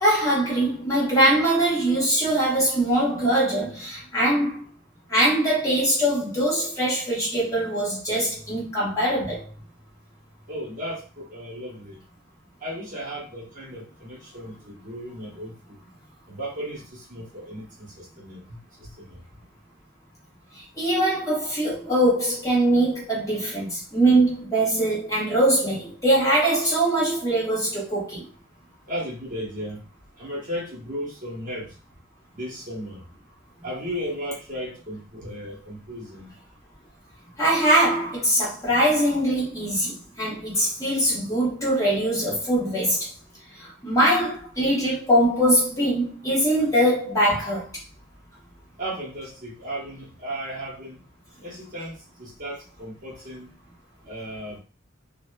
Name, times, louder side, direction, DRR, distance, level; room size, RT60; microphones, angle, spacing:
voice 1, 0.0-4.6 5.1-9.5 20.8-28.3 37.4-43.1 43.6-47.7, right 1 dB, 15° left, 0.9 m, -22 dB
voice 2, 10.5-12.0 12.6-15.8 16.3-19.2 28.9-29.8 30.2-31.7 32.3-33.0 33.6-36.3 48.8-51.0 51.4-53.5 54.1-54.6, equal, 45° right, 1.0 m, -35 dB
2.8 x 2.1 x 2.2 m
head